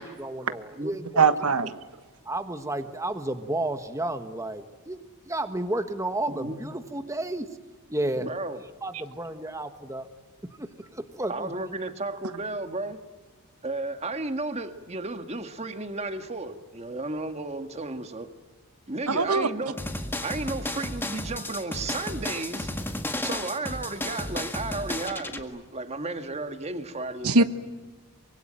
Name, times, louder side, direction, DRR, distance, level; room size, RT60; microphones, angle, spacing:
voice 1, 0.0-1.3 2.2-7.5 7.9-8.3 8.8-10.1 10.6-11.5, right 1 dB, 15° right, 8 dB, 1.3 m, -32 dB
voice 2, 1.2-1.8 19.1-19.5 27.2-27.4, right 4 dB, 85° right, 11 dB, 1.3 m, -21 dB
voice 3, 6.3-6.6 8.2-8.6 9.4-9.5 11.3-13.0 13.6-18.3 18.9-19.8 20.2-22.7 23.2-27.4, right 2 dB, 30° right, 8 dB, 1.7 m, -33 dB
sound 1, 19.8-25.4, left 1 dB, 10° left, 1.8 m, -33 dB
24.5 x 23.5 x 9.1 m, 1.4 s
head